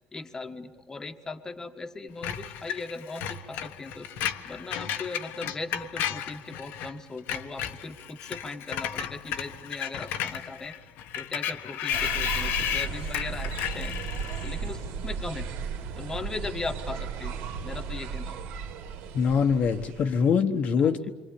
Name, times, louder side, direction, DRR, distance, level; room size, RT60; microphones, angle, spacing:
voice 1, 0.1-4.1 4.4-10.7 11.2-13.9 14.4-15.5 15.9-18.4 20.8-21.1, left 3 dB, 15° left, 1.4 m, -38 dB
Screech, 2.2-6.9 7.2-14.6, left 9 dB, 75° left, 1.5 m, -33 dB
sound 1, 11.9-20.3, right 6 dB, 80° right, 2.8 m, -35 dB
voice 2, 19.1-21.1, left 6 dB, 45° left, 1.3 m, -23 dB
27.5 x 24.5 x 8.6 m
cardioid pair, 150°, 3 cm